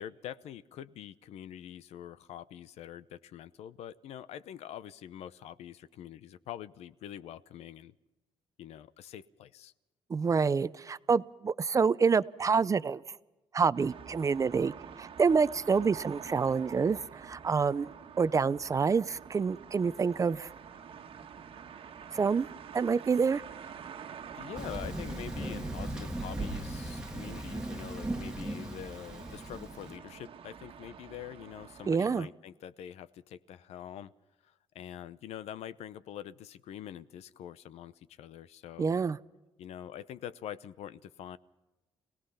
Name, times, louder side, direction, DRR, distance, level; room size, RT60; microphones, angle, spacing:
voice 1, 0.0-7.9 8.6-9.7 24.3-34.1 34.4-39.0 39.6-41.4, left 10 dB, 85° left, 15 dB, 0.8 m, -45 dB
voice 2, 10.1-13.0 13.5-14.7 15.0-17.9 18.2-20.5 22.1-22.5 22.7-23.4 31.9-32.3 38.8-39.2, right 5 dB, 30° right, 16 dB, 0.6 m, -27 dB
sound 1, 13.7-31.9, right 7 dB, 60° right, 1.5 m, -48 dB
Thunder, 24.6-30.0, right 1 dB, 5° right, 1.7 m, -38 dB
26.0 x 18.0 x 5.7 m, 1.1 s
cardioid pair, 115°, 11 cm